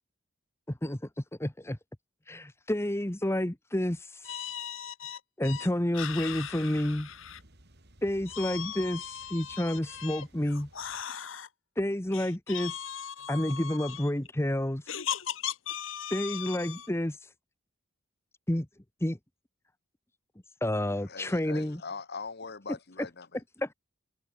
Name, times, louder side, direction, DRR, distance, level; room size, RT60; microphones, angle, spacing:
voice 1, 1.4-1.8 2.3-4.4 5.4-7.1 8.0-10.7 11.8-12.7 13.3-14.8 16.1-17.2 18.5-18.7 19.0-19.2 20.6-21.8 23.6-23.7, left 1 dB, 15° left, 1.0 m, -29 dB
voice 2, 4.3-5.7 5.9-7.4 8.3-10.2 10.7-11.5 12.1-14.1 14.9-16.9, left 9 dB, 70° left, 1.5 m, -38 dB
sound 1, 6.0-11.0, right 1 dB, 55° right, 3.7 m, -57 dB
voice 3, 21.1-23.4, left 4 dB, 55° left, 1.3 m, -41 dB
head